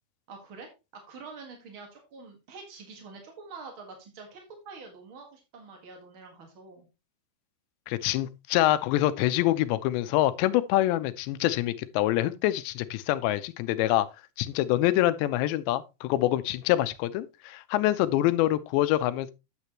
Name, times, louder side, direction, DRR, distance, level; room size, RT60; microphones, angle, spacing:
voice 1, 0.3-6.9, right 4 dB, 60° right, 1.3 m, -46 dB
voice 2, 7.9-14.1 14.4-19.3, left 15 dB, 90° left, 2.9 m, -25 dB
9.3 x 8.1 x 2.9 m
omnidirectional pair, 5.0 m